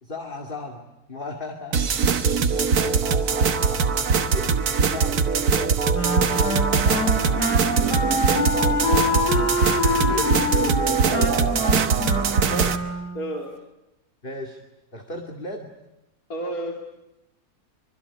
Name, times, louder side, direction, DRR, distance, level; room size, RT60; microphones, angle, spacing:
voice 1, 0.0-0.8 1.1-1.8 4.2-4.5 4.9-5.2 6.3-7.5 8.3-8.7 10.0-10.3 11.0-11.6 12.3-12.8 14.2-14.6 14.9-15.7, left 2 dB, 35° left, 3 dB, 2.4 m, -35 dB
sound 1, 1.7-12.8, right 5 dB, 70° right, 1.7 m, -22 dB
Wind instrument woodwind instrument, 5.9-13.3, left 2 dB, 85° left, 3.7 m, -26 dB
voice 2, 7.8-8.1 10.3-11.4 13.1-13.5 16.3-16.8, equal, 65° left, 1 dB, 3.2 m, -33 dB
24.5 x 23.5 x 10.0 m, 0.94 s
omnidirectional pair, 1.7 m